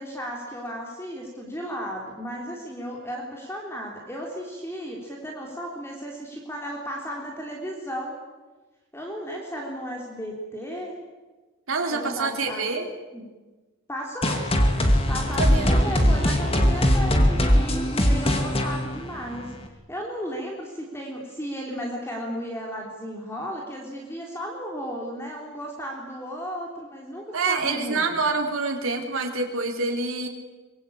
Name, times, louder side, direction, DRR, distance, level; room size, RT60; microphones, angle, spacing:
voice 1, 0.0-8.2 8.9-10.9 11.9-12.7 13.1-13.3 13.9-14.4 15.1-19.5 19.9-28.2, equal, 10° left, -1 dB, 3.6 m, -34 dB
voice 2, 11.7-12.9 15.4-15.9 27.3-30.3, right 3 dB, 75° right, 2 dB, 3.8 m, -26 dB
sound 1, 14.2-19.7, equal, 25° left, 2.6 m, -21 dB
24.5 x 22.0 x 8.7 m, 1.3 s
head